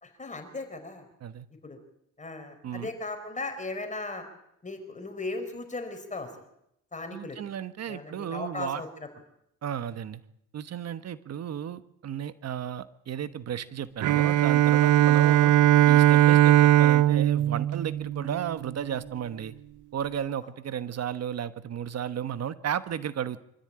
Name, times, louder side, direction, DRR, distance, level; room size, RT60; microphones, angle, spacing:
voice 1, 0.0-1.0 1.6-1.8 2.2-4.2 4.6-6.3 6.9-7.4 7.9-8.9, left 3 dB, 25° left, 7 dB, 4.5 m, -37 dB
voice 2, 7.1-8.8 9.6-10.2 10.5-15.5 15.9-19.5 19.9-23.4, right 9 dB, 55° right, 13 dB, 1.3 m, -34 dB
Bowed string instrument, 14.0-18.7, right 13 dB, 80° right, 0.8 m, -20 dB
25.5 x 13.5 x 8.8 m, 0.79 s
cardioid pair, 90°, 30 cm